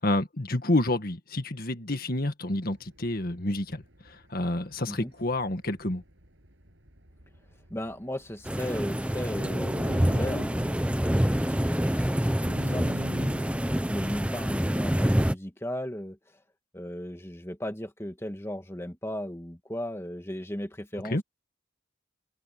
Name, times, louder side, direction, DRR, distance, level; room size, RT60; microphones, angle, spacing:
voice 1, 0.0-6.0 21.0-21.2, left 1 dB, 50° left, 1.8 m, -29 dB
sound 1, 2.6-14.2, equal, 70° right, 7.6 m, -47 dB
voice 2, 7.7-13.6 13.9-16.4 16.7-21.2, left 1 dB, 15° left, 1.9 m, -36 dB
sound 2, 8.5-15.3, equal, 5° right, 0.8 m, -26 dB
head